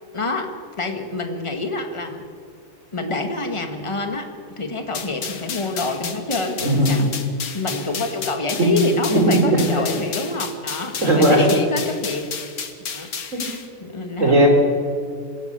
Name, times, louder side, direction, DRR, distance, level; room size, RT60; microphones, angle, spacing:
voice 1, 0.1-0.5 0.8-2.2 2.9-4.3 4.6-7.1 7.5-12.3 12.9-13.1 13.4-14.5, left 2 dB, 20° left, 5 dB, 1.8 m, -26 dB
sound 1, 4.9-13.7, left 6 dB, 70° left, 1.9 m, -32 dB
voice 2, 6.6-7.0 8.6-8.7 9.1-9.6 11.0-11.4 13.3-13.4 14.2-14.5, right 1 dB, 50° right, 2 dB, 4.5 m, -16 dB
25.5 x 16.5 x 7.0 m, 2.1 s
omnidirectional pair, 1.6 m